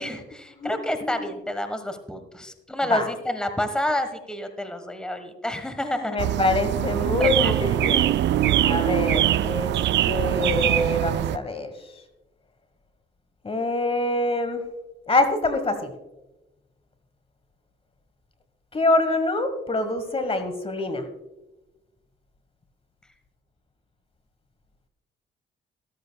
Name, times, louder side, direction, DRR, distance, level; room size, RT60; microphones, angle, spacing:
voice 1, 0.0-6.2 7.2-7.5, left 1 dB, 5° left, 9 dB, 1.3 m, -29 dB
voice 2, 1.0-1.3 2.9-3.1 6.0-8.2 8.6-9.8 10.1-11.7 13.4-14.6 15.1-15.9 18.7-21.1, left 2 dB, 30° left, 9 dB, 1.3 m, -25 dB
sound 1, 6.2-11.4, right 12 dB, 65° right, 0.4 m, -23 dB
14.5 x 13.5 x 2.3 m, 1.0 s
cardioid pair, 90°, 20 cm